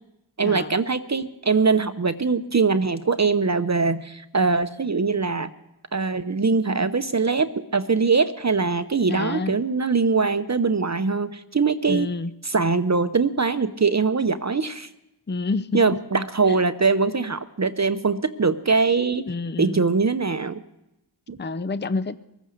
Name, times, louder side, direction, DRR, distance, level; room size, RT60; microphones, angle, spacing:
voice 1, 0.4-5.5 5.9-12.1 12.5-14.9 15.7-19.2 19.6-20.6 21.3-21.4, right 4 dB, 35° right, 11 dB, 0.8 m, -22 dB
voice 2, 9.1-9.6 11.9-12.3 15.3-15.9 16.5-16.6 19.3-19.8 21.4-22.2, left 3 dB, 25° left, 15 dB, 0.7 m, -28 dB
21.0 x 9.1 x 6.6 m, 0.93 s
cardioid pair, 40°, 47 cm